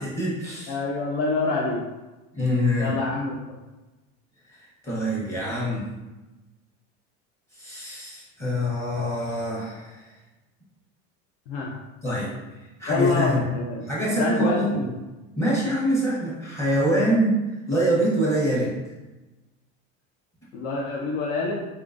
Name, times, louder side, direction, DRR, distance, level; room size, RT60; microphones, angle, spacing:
voice 1, 0.0-0.8 2.3-3.0 4.5-5.9 7.5-10.1 12.0-12.3 12.8-13.4 13.9-14.9 15.4-18.7, equal, 10° left, -7 dB, 1.0 m, -25 dB
voice 2, 0.7-1.8 2.8-3.6 11.5-11.8 12.9-14.8 20.5-21.7, left 3 dB, 70° left, -2 dB, 0.7 m, -27 dB
4.2 x 3.7 x 2.5 m, 1.1 s
cardioid pair, 175°, 29 cm